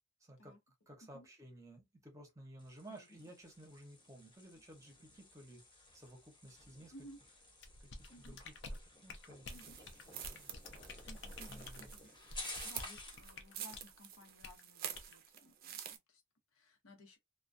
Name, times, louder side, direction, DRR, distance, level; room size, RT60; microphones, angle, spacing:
voice 1, 0.2-0.6 0.9-5.6 5.9-6.9 7.8-9.5 10.1-10.5 11.5-11.9, right 1 dB, 15° right, 0.7 m, -56 dB
sound 1, 2.6-13.3, left 2 dB, 20° left, 0.9 m, -54 dB
sound 2, 7.6-13.9 14.4-14.6 14.9-15.2, left 2 dB, 55° left, 0.5 m, -49 dB
sound 3, 9.5-16.0, right 9 dB, 45° right, 0.4 m, -49 dB
voice 2, 11.1-12.1 12.6-16.2 16.5-17.2, equal, 90° left, 0.9 m, -58 dB
2.2 x 2.2 x 2.5 m
head